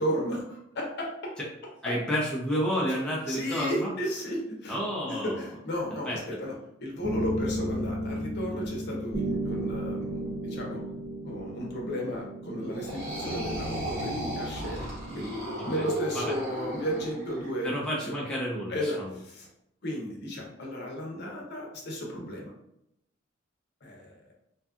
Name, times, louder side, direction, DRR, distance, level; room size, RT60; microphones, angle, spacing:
voice 1, 0.0-1.3 1.9-2.0 2.9-3.0 3.3-4.8 5.1-6.5 6.8-10.8 11.2-18.2 18.7-19.5 19.8-22.5 23.8-24.1, equal, 55° left, -1 dB, 0.7 m, -34 dB
voice 2, 1.8-3.9 4.7-5.4 6.1-6.2 15.6-15.8 16.1-16.3 17.6-19.1, equal, 5° left, -6 dB, 0.5 m, -30 dB
sound 1, 7.0-15.8, right 1 dB, 50° right, 0.5 m, -35 dB
sound 2, 12.7-17.5, equal, 70° right, 1.4 m, -35 dB
2.6 x 2.3 x 2.3 m, 0.80 s
head